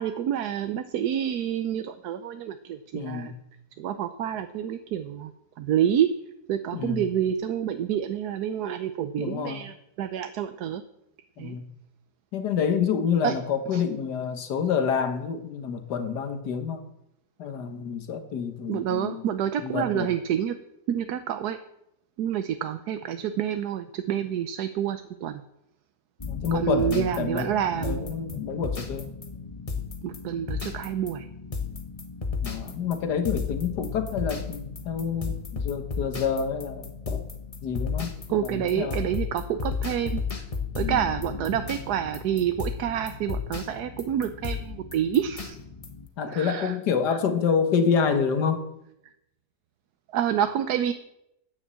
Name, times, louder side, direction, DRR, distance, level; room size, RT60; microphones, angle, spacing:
voice 1, 0.0-3.3 3.8-5.3 5.6-6.1 6.5-10.8 11.4-11.5 13.2-13.3 13.7-13.8 18.7-20.5 20.9-21.6 22.2-25.4 26.5-28.1 30.0-31.3 38.3-40.2 40.8-45.6 46.3-46.7 50.1-50.9, right 10 dB, 75° right, 9 dB, 1.2 m, -28 dB
voice 2, 2.9-3.3 6.7-7.1 9.2-9.7 11.4-11.7 12.3-16.8 17.4-19.3 19.6-20.1 26.2-29.1 32.4-37.2 37.6-39.0 40.8-41.0 46.2-48.6, left 6 dB, 80° left, 7 dB, 1.8 m, -28 dB
sound 1, 26.2-46.1, left 5 dB, 25° left, 1.0 m, -34 dB
10.0 x 9.9 x 7.5 m, 0.83 s
omnidirectional pair, 1.8 m